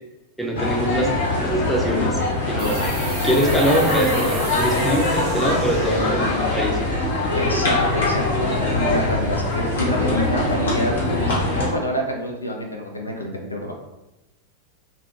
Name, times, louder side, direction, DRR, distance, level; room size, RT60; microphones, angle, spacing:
voice 1, 0.4-2.2 2.5-2.9 3.2-6.8, equal, ahead, -1 dB, 0.5 m, -23 dB
sound 1, 0.6-11.7, left 2 dB, 65° left, 0.9 m, -22 dB
sound 2, 2.6-7.7, right 4 dB, 45° right, 0.6 m, -37 dB
voice 2, 7.4-11.4 11.7-13.7, equal, 80° left, 2 dB, 0.3 m, -27 dB
2.3 x 2.1 x 2.8 m, 0.97 s
figure-of-eight pair, 90°, 0 cm